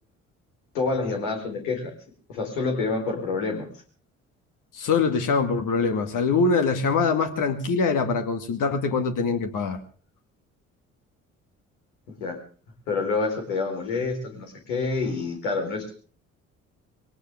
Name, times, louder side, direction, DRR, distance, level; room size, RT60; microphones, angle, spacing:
voice 1, 0.7-1.9 2.3-3.7 12.1-12.4 12.9-15.9, left 3 dB, 75° left, 4.4 m, -27 dB
voice 2, 4.7-9.8, left 4 dB, 55° left, 2.2 m, -23 dB
22.0 x 18.0 x 3.6 m
figure-of-eight pair, 45°, 38 cm